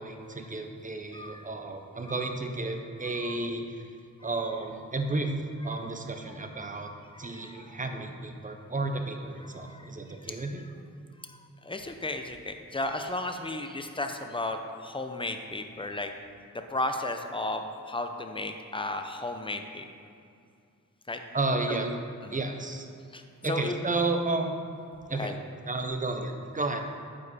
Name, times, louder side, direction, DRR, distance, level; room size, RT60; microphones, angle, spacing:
voice 1, 0.0-3.6 4.2-5.3 5.6-6.9 7.2-10.6 21.3-21.9 22.3-22.9 23.4-24.6 25.1-25.3 25.7-26.8, right 2 dB, 25° right, 4 dB, 0.7 m, -32 dB
voice 2, 1.1-1.5 2.0-2.3 3.0-3.4 4.2-4.5 5.7-5.9 6.2-6.4 7.1-7.8 9.4-9.9 10.2-10.6 11.2-16.1 16.7-19.9 21.1-21.2 21.7-21.8 22.2-22.4 23.1-23.7 25.1-25.3, left 2 dB, 15° left, 5 dB, 0.6 m, -35 dB
8.9 x 5.1 x 4.2 m, 2.4 s
wide cardioid pair, 95°, 32 cm